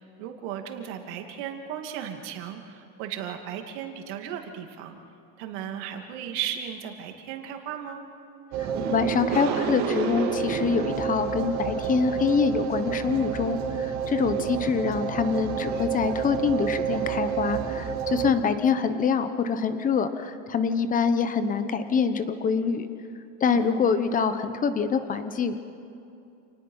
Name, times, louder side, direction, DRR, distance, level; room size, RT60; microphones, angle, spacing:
voice 1, 0.2-5.0 5.4-8.0 14.2-14.5 23.5-23.9, right 9 dB, 65° right, 4 dB, 2.6 m, -36 dB
sound 1, 8.5-18.3, right 7 dB, 45° right, 2.6 m, -29 dB
voice 2, 8.9-22.9 23.4-25.6, left 6 dB, 20° left, 10 dB, 1.0 m, -25 dB
28.5 x 19.5 x 5.6 m, 2.7 s
supercardioid pair, 155°, 39 cm